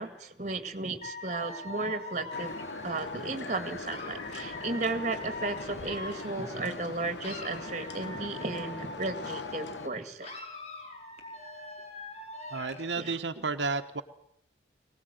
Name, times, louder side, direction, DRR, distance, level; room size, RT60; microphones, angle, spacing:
voice 1, 0.0-2.6 2.8-10.3 13.0-13.1, right 2 dB, 40° right, 9 dB, 2.2 m, -34 dB
Dog / Alarm, 1.0-6.9 7.2-9.9 10.2-12.9, left 2 dB, 40° left, 4.6 m, -42 dB
sound 1, 2.3-9.9, left 2 dB, 80° left, 1.5 m, -41 dB
voice 2, 12.5-14.0, right 4 dB, 90° right, 6 dB, 1.2 m, -32 dB
23.5 x 18.5 x 9.2 m, 0.74 s
head